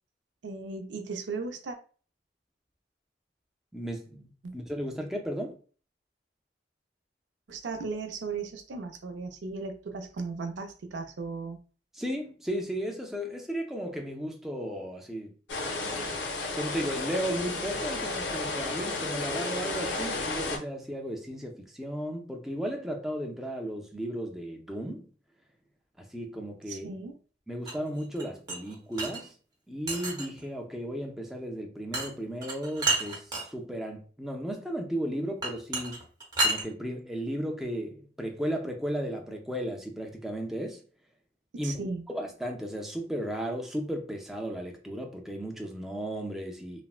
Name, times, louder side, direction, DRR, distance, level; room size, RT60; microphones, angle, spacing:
voice 1, 0.4-1.8 4.4-4.5 7.5-11.6 26.7-27.2 41.5-42.0, right 4 dB, 80° right, 0.5 m, -36 dB
voice 2, 3.7-5.6 11.9-15.3 16.5-25.1 26.0-27.0 27.5-29.3 29.7-36.0 36.4-40.8 41.6-41.7 42.1-46.8, equal, ahead, 0.3 m, -35 dB
sound 1, 15.5-20.6, left 2 dB, 75° left, 0.6 m, -32 dB
sound 2, 27.6-29.2 29.9-30.4 31.9-32.1 32.4-33.4 35.4-36.6, right 2 dB, 20° right, 0.7 m, -30 dB
3.3 x 2.0 x 2.3 m
head